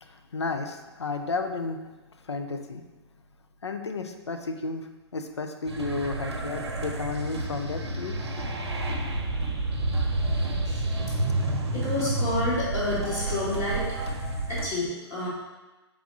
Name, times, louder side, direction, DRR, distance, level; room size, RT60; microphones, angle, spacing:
voice 1, 0.0-1.9 2.2-2.8 3.6-8.2 8.8-8.9, left 3 dB, 75° left, 6 dB, 0.5 m, -33 dB
sound 1, 5.7-14.6, right 2 dB, 65° right, 0.7 m, -29 dB
voice 2, 11.7-14.0 14.5-15.3, left 1 dB, 20° left, -10 dB, 0.9 m, -29 dB
3.6 x 3.4 x 3.9 m, 1.1 s
figure-of-eight pair, 115°, 15 cm